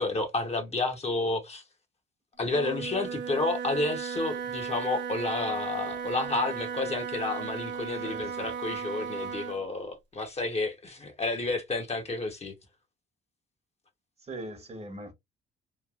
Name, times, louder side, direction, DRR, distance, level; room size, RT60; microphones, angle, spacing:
voice 1, 0.0-1.6 2.4-12.5, left 3 dB, 30° left, 0.8 m, -31 dB
Wind instrument woodwind instrument, 2.4-9.7, right 7 dB, 65° right, 0.5 m, -36 dB
voice 2, 8.0-8.5 14.2-15.1, right 1 dB, 30° right, 1.0 m, -40 dB
3.1 x 2.3 x 2.3 m
cardioid pair, 90°, 20 cm